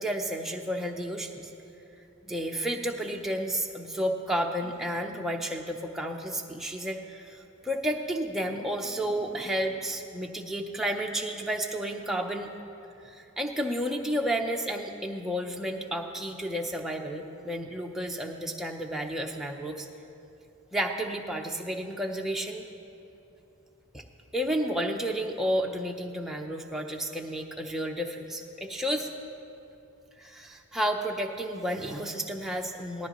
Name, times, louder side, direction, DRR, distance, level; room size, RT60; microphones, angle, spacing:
voice 1, 0.0-1.5 2.3-12.5 13.0-19.9 20.7-22.6 23.9-24.0 24.3-29.1 30.2-33.1, equal, ahead, 1 dB, 0.7 m, -31 dB
18.5 x 13.0 x 3.1 m, 2.9 s
head